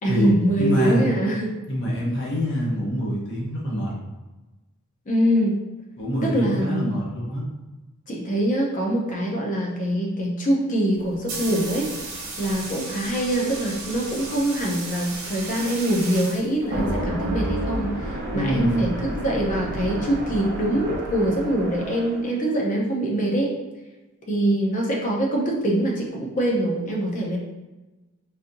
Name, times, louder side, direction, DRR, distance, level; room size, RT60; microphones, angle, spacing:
voice 1, 0.0-1.5 5.1-5.6 6.2-7.0 8.1-11.9 12.4-23.5 24.3-27.4, right 1 dB, 35° left, -2 dB, 0.7 m, -24 dB
voice 2, 0.6-1.1 1.7-3.9 6.0-7.4 18.3-18.9, equal, 55° left, -4 dB, 1.0 m, -25 dB
sound 1, 11.0-17.0, right 3 dB, 70° right, 1.0 m, -35 dB
sound 2, 16.6-22.3, right 1 dB, 50° right, 0.6 m, -30 dB
4.0 x 2.7 x 2.6 m, 1.1 s
head